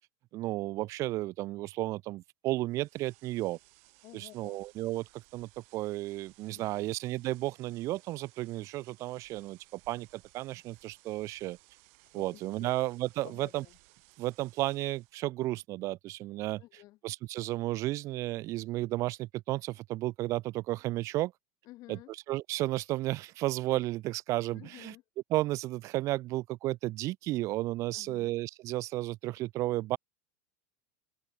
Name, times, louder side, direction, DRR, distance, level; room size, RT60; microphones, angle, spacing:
voice 1, 0.3-3.6 4.1-11.6 12.1-13.6 14.2-16.6 17.0-21.3 21.9-22.0 22.3-24.9 25.3-30.0, right 17 dB, 35° right, 0.5 m, -33 dB
sound 1, 2.7-15.2, right 31 dB, 60° right, 2.2 m, -62 dB
voice 2, 4.0-4.6 6.5-6.9 12.1-12.7 13.2-13.8 16.6-17.0 21.6-22.1 24.5-25.0 27.9-28.3, left 18 dB, 40° left, 5.0 m, -52 dB
supercardioid pair, 145°, 9 cm